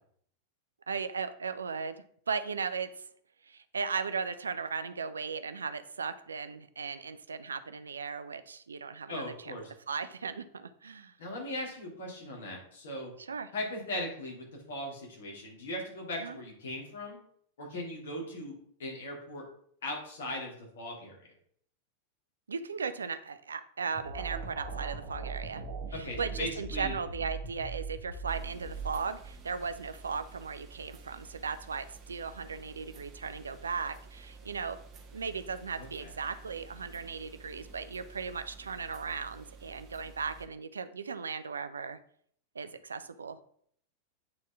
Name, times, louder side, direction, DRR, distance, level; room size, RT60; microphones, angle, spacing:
voice 1, 0.9-3.1 3.4-9.5 9.9-11.1 13.2-13.5 16.2-16.4 22.5-25.6 25.9-34.8 35.1-42.0 42.5-43.4, right 5 dB, 70° right, 12 dB, 0.4 m, -37 dB
voice 2, 9.1-9.6 11.2-13.1 13.5-17.2 17.6-18.5 18.8-19.4 19.8-21.3 25.9-27.0 35.8-36.1, left 1 dB, 60° left, -1 dB, 2.4 m, -39 dB
sound 1, 23.9-29.4, right 4 dB, 50° right, 1.1 m, -40 dB
sound 2, 28.3-40.5, right 4 dB, 30° right, 1.2 m, -51 dB
8.7 x 4.1 x 3.5 m, 0.64 s
figure-of-eight pair, 90°, 0 cm